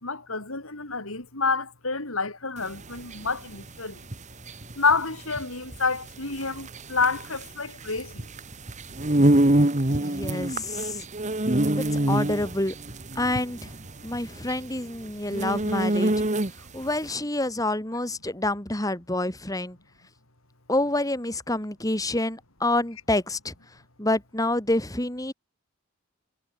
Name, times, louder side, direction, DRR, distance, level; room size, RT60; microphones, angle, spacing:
voice 1, 0.0-4.0 4.8-8.3, left 4 dB, 85° left, 5.6 m, -28 dB
sound 1, 2.6-16.8, right 1 dB, 35° right, 1.6 m, -26 dB
voice 2, 10.0-11.0 11.7-12.7 13.1-13.7 14.0-16.1 16.7-19.8 20.7-23.5 24.0-25.3, left 1 dB, 15° left, 2.8 m, -27 dB
head